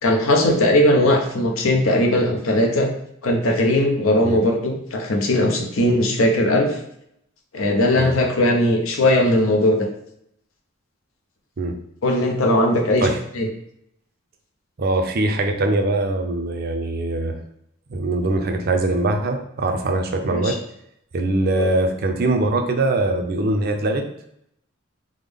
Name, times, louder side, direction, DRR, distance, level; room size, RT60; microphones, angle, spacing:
voice 1, 0.0-2.9 3.2-6.8 7.5-9.8 12.0-13.1 13.3-13.5 20.3-20.5 21.6-21.7, left 1 dB, 80° left, 2 dB, 0.7 m, -19 dB
voice 2, 14.8-17.3 17.9-20.6 21.1-24.0, right 2 dB, 50° right, 5 dB, 0.4 m, -22 dB
3.5 x 2.0 x 3.4 m, 0.73 s
head